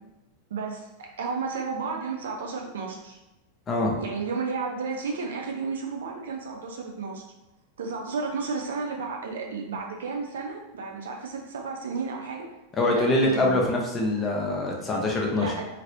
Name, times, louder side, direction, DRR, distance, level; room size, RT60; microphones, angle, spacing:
voice 1, 0.5-3.2 4.0-7.2 7.8-12.5 12.9-13.6 15.3-15.7, right 4 dB, 60° right, 1 dB, 0.6 m, -32 dB
voice 2, 3.7-4.0 12.8-15.5, left 1 dB, 20° left, -1 dB, 0.7 m, -24 dB
3.0 x 2.9 x 2.6 m, 0.99 s
figure-of-eight pair, 90°, 0 cm